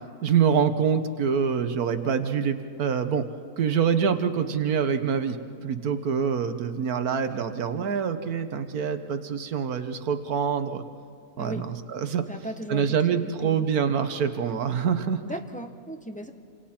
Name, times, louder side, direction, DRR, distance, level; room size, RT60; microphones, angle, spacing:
voice 1, 0.2-3.2 3.6-5.4 5.6-10.8 11.4-12.2 12.7-15.2, right 7 dB, 70° right, 9 dB, 1.5 m, -25 dB
voice 2, 11.4-11.7 12.3-13.0 13.2-13.6 15.2-16.3, right 1 dB, 5° left, 5 dB, 0.7 m, -36 dB
28.0 x 26.0 x 4.4 m, 2.4 s
omnidirectional pair, 1.6 m